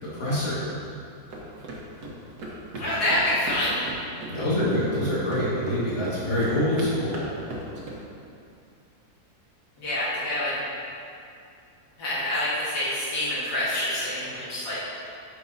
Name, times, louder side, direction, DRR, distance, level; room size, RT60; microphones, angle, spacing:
voice 1, 0.0-0.6 4.3-7.3, left 1 dB, 45° left, -9 dB, 2.2 m, -25 dB
sound 1, 1.3-7.9, right 1 dB, 75° right, 1.6 m, -38 dB
voice 2, 2.8-3.8 9.8-10.6 12.0-14.8, left 1 dB, 85° left, -9 dB, 2.2 m, -27 dB
8.7 x 6.1 x 2.7 m, 2.6 s
omnidirectional pair, 1.7 m